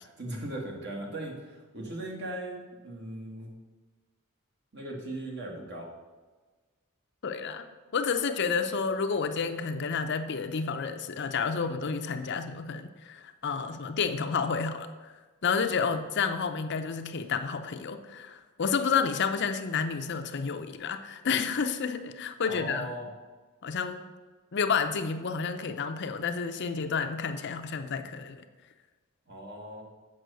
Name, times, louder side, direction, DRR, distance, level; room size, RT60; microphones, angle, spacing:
voice 1, 0.0-3.5 4.7-5.9 22.4-23.1 29.3-29.8, right 1 dB, 50° right, -1 dB, 1.8 m, -38 dB
voice 2, 7.2-7.7 7.9-15.1 15.4-22.9 23.6-24.0 24.5-28.4, left 5 dB, 55° left, 8 dB, 0.6 m, -30 dB
7.7 x 5.5 x 6.8 m, 1.3 s
head